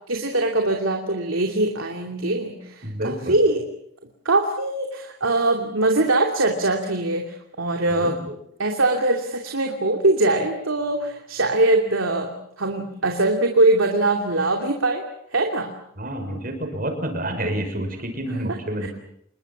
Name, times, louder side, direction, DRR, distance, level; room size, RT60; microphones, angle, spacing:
voice 1, 0.1-3.6 4.2-8.2 8.6-15.0 15.3-15.7 18.8-18.9, right 2 dB, 90° right, 3 dB, 2.8 m, -22 dB
voice 2, 2.8-3.4 8.0-8.4 16.0-18.9, right 1 dB, 45° right, 6 dB, 5.9 m, -29 dB
27.5 x 22.0 x 7.4 m, 0.74 s
head